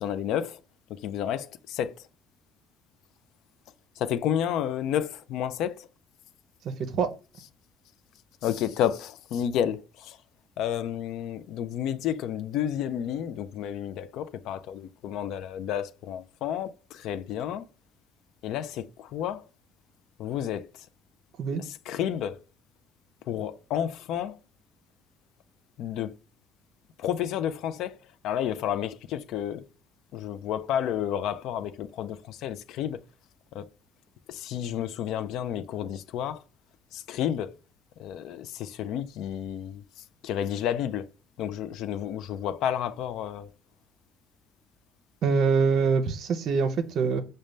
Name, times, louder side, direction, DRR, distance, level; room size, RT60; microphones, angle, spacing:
voice 1, 0.0-0.6 0.9-2.1 4.0-5.9 7.4-7.5 8.4-10.2 10.6-17.6 18.4-19.4 20.2-20.7 21.6-22.4 23.3-24.4 25.8-26.2 27.0-28.0 28.2-29.7 30.1-33.0 33.5-33.7 34.3-36.4 36.9-37.5 38.0-39.8 40.2-41.1 41.4-43.5, left 10 dB, 70° left, 0.3 m, -31 dB
voice 2, 6.6-7.1 21.4-21.6 45.2-47.2, right 5 dB, 55° right, 0.5 m, -24 dB
5.1 x 2.1 x 3.2 m
cardioid pair, 115°, 0 cm